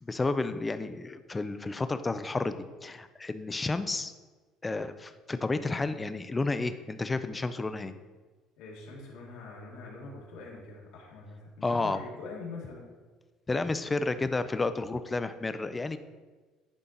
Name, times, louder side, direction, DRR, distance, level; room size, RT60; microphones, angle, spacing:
voice 1, 0.0-2.5 2.8-4.1 4.6-7.9 11.6-12.0 13.5-16.0, left 3 dB, 15° left, 11 dB, 0.3 m, -31 dB
voice 2, 8.6-12.9, left 3 dB, 85° left, -3 dB, 1.9 m, -44 dB
11.0 x 4.2 x 3.8 m, 1.4 s
cardioid pair, 160°, 0 cm